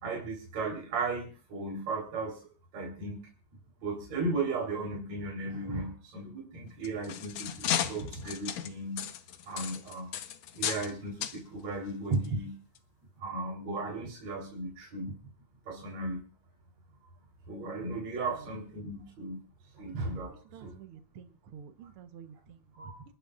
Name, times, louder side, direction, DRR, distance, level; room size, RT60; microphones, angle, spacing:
voice 1, 0.0-3.2 3.8-9.1 9.5-10.1 10.5-12.6 13.2-15.1 15.7-16.2 17.5-19.4 19.7-20.7 22.7-23.0, right 3 dB, 45° right, 0 dB, 4.9 m, -36 dB
sound 1, 6.7-10.9 11.2-11.4 12.1-12.3 12.8-12.9, left 10 dB, 80° left, 1.5 m, -34 dB
voice 2, 20.3-22.9, right 8 dB, 75° right, 8 dB, 1.3 m, -50 dB
29.5 x 12.0 x 2.5 m, 0.37 s
omnidirectional pair, 4.3 m